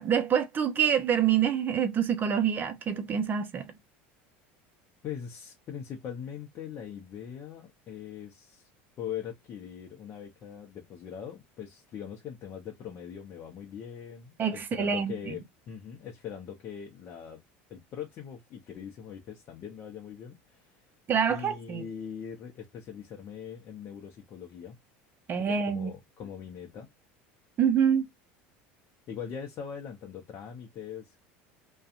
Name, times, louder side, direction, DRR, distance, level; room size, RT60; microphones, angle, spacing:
voice 1, 0.0-3.7 14.4-15.4 21.1-21.8 25.3-25.9 27.6-28.1, right 8 dB, 35° right, 0.7 m, -26 dB
voice 2, 5.0-8.7 9.0-17.4 17.7-20.8 21.3-24.7 25.3-26.9 29.1-31.2, left 8 dB, 45° left, 0.7 m, -41 dB
2.6 x 2.3 x 2.4 m
supercardioid pair, 105°, 6 cm